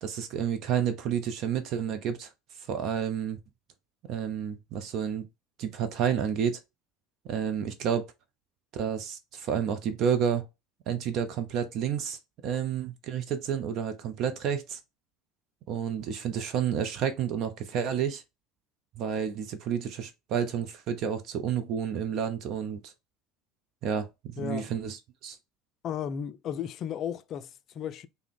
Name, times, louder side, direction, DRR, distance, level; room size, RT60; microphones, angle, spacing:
voice 1, 0.0-2.3 2.7-3.4 4.1-5.3 5.6-6.6 7.2-8.1 8.7-10.4 10.9-14.8 15.7-18.2 19.0-22.9 23.8-25.4, right 8 dB, 55° right, 0.6 m, -30 dB
voice 2, 24.4-24.7 25.8-28.1, left 8 dB, 45° left, 0.4 m, -34 dB
3.4 x 2.1 x 3.6 m
hypercardioid pair, 70°, 0 cm